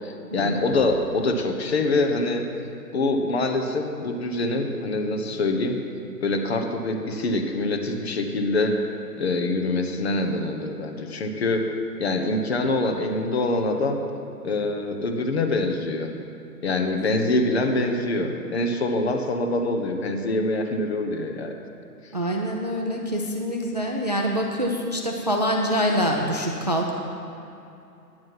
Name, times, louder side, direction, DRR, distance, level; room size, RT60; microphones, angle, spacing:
voice 1, 0.0-2.4 2.9-5.8 6.2-8.7 9.2-11.7 12.0-14.0 14.4-16.1 16.6-21.6, left 2 dB, 40° left, 4 dB, 1.0 m, -25 dB
voice 2, 22.1-26.9, equal, 30° right, 0 dB, 0.4 m, -25 dB
9.6 x 7.6 x 5.8 m, 2.8 s
figure-of-eight pair, 135°, 48 cm